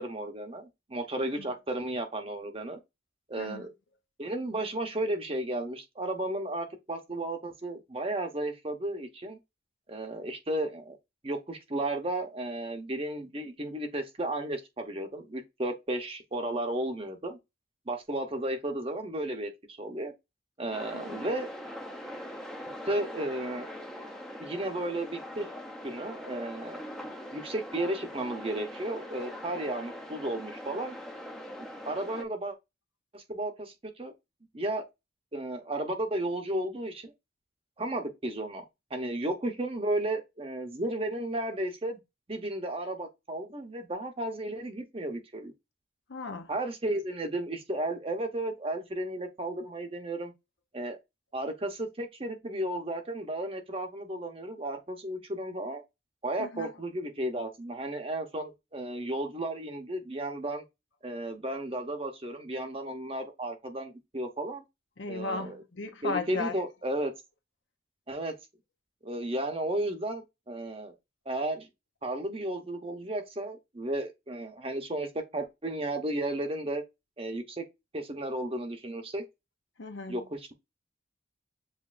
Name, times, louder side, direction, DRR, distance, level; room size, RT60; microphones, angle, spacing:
voice 1, 0.0-2.8 3.3-3.7 4.2-9.4 9.9-11.0 11.2-17.4 17.9-20.1 20.6-21.5 22.8-23.7 24.4-25.5 25.8-26.8 27.3-31.0 31.8-32.5 33.1-34.1 34.5-34.8 35.3-37.1 37.8-38.6 38.9-42.0 42.3-45.5 46.5-50.3 50.7-51.0 51.3-55.8 56.2-60.6 61.0-64.6 65.1-65.6 66.0-67.1 68.1-68.3 69.0-70.9 71.3-71.7 72.0-76.8 77.2-77.7 77.9-79.2 80.1-80.5, right 1 dB, 30° right, 0.8 m, -34 dB
sound 1, 20.7-32.2, equal, 5° left, 0.6 m, -42 dB
voice 2, 46.1-46.5 56.4-56.7 65.0-66.5 79.8-80.2, left 4 dB, 75° left, 0.8 m, -36 dB
7.4 x 2.6 x 2.5 m
head